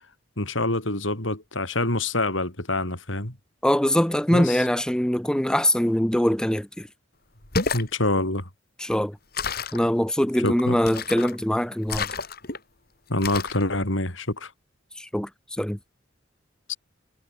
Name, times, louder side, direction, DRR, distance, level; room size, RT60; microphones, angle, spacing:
voice 1, 0.4-3.4 4.3-4.7 7.7-8.5 10.4-10.8 13.1-14.5 16.7-16.8, left 2 dB, 75° left, 5.2 m, -26 dB
voice 2, 3.6-6.9 8.8-9.2 9.7-12.1 15.0-15.8, equal, 5° left, 0.6 m, -23 dB
sound 1, 7.4-7.9 9.3-9.8 10.8-11.4 11.9-12.6 13.2-13.6, left 4 dB, 50° left, 4.5 m, -29 dB
head